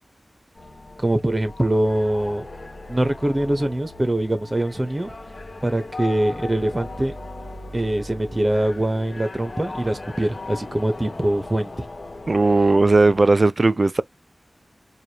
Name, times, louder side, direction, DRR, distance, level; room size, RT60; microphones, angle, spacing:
sound 1, 0.5-13.3, left 2 dB, 55° left, 2.1 m, -38 dB
voice 1, 1.0-2.5 2.9-5.1 5.6-7.1 7.7-11.9, right 1 dB, 25° right, 1.0 m, -23 dB
voice 2, 12.3-14.0, right 3 dB, 45° right, 0.4 m, -17 dB
4.9 x 2.6 x 2.9 m
wide cardioid pair, 85°, 0 cm